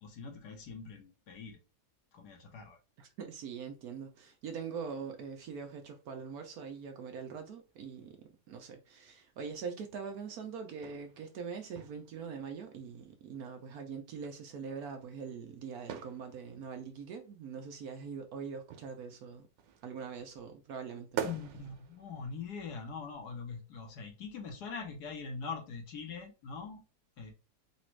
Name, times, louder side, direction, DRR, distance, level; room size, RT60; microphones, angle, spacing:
voice 1, 0.0-1.6 2.1-2.8 21.2-26.8 27.2-27.3, left 5 dB, 65° left, 1.5 m, -43 dB
voice 2, 3.0-19.5 19.8-21.3, right 6 dB, 65° right, 1.0 m, -43 dB
sound 1, 6.0-6.1 7.0-7.5 7.9-9.1 9.5-9.6 9.9-13.0 13.7-14.5 14.7-14.8 15.1-15.4 15.9-20.8 21.2-23.7 24.0-24.1, right 9 dB, 90° right, 1.4 m, -46 dB
4.1 x 2.4 x 4.4 m
omnidirectional pair, 1.9 m